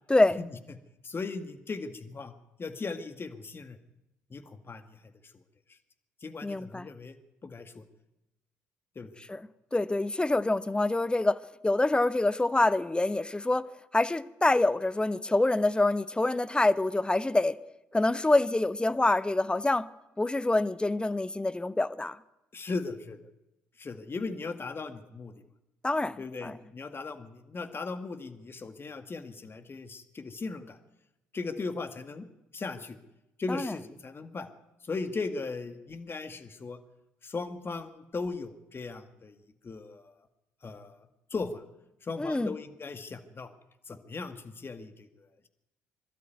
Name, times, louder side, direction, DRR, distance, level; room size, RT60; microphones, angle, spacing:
voice 1, 0.1-0.4 6.4-6.9 9.3-9.4 9.7-13.7 13.9-17.6 17.9-19.9 20.2-22.2 25.8-26.6 33.5-33.7 42.2-42.6, left 2 dB, 15° left, 1.0 m, -26 dB
voice 2, 1.0-2.3 2.6-3.8 4.3-4.8 6.2-7.1 7.4-7.8 9.0-9.2 22.5-23.2 23.8-25.3 26.2-30.8 31.3-32.3 32.5-33.0 33.4-34.5 34.8-36.8 37.2-39.4 39.6-40.1 40.6-41.0 41.3-41.6 42.0-43.5 43.9-45.5, left 3 dB, 35° left, 2.1 m, -37 dB
23.0 x 12.5 x 9.4 m
hypercardioid pair, 50°, 7 cm